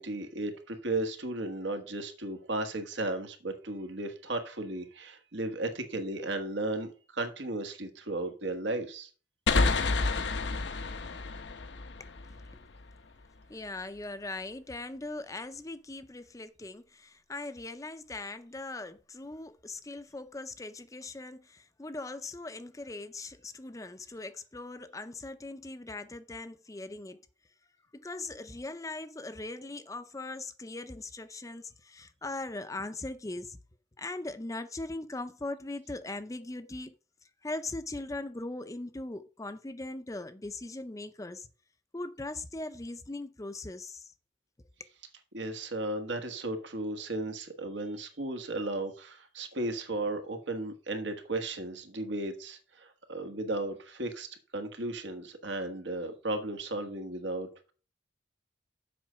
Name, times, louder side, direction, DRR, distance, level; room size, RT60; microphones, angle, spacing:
voice 1, 0.0-9.1 45.3-54.3 54.5-57.7, right 2 dB, 85° right, 1.4 m, -35 dB
sound 1, 9.5-12.9, left 3 dB, 80° left, 0.8 m, -29 dB
voice 2, 13.5-27.2 27.9-33.6 34.0-36.9 37.4-41.5 41.9-44.1, left 2 dB, 20° left, 0.5 m, -40 dB
7.5 x 5.0 x 5.6 m
head